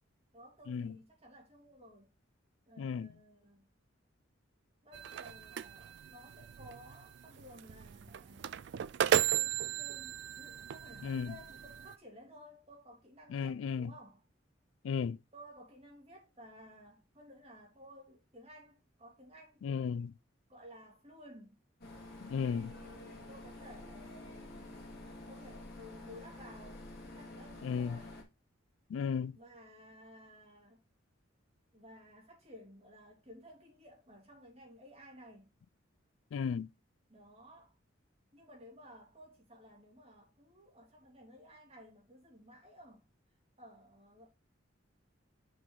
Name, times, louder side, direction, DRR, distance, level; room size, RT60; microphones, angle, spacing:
voice 1, 0.3-2.1 2.7-3.7 4.8-8.6 9.5-14.2 15.3-19.9 20.5-21.6 22.4-28.2 29.3-30.8 31.7-35.5 37.1-37.8 38.3-43.1 43.6-44.3, equal, 30° right, 2.7 m, -56 dB
voice 2, 2.8-3.1 11.0-11.3 13.3-13.9 14.8-15.2 19.6-20.1 22.2-22.7 27.6-28.0 28.9-29.4 36.3-36.7, left 6 dB, 80° left, 0.3 m, -34 dB
sound 1, 4.9-11.9, right 9 dB, 60° right, 0.3 m, -35 dB
sound 2, 21.8-28.2, left 2 dB, 50° left, 2.1 m, -49 dB
6.3 x 4.5 x 3.8 m
head